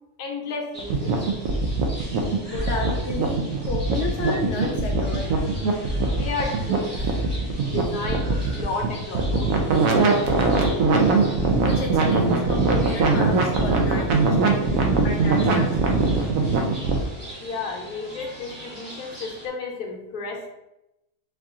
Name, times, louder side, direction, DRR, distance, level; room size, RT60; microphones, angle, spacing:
voice 1, 0.2-1.1 6.1-6.9 7.7-9.8 14.0-14.1 17.4-20.5, left 3 dB, 80° left, 0 dB, 1.4 m, -32 dB
sound 1, 0.7-19.5, equal, 30° right, 1.9 m, -41 dB
sound 2, 0.8-17.0, right 3 dB, 65° right, 1.0 m, -22 dB
voice 2, 2.4-5.3 11.5-16.1, left 3 dB, 60° left, 1 dB, 0.8 m, -32 dB
4.6 x 2.9 x 3.6 m, 0.88 s
omnidirectional pair, 1.6 m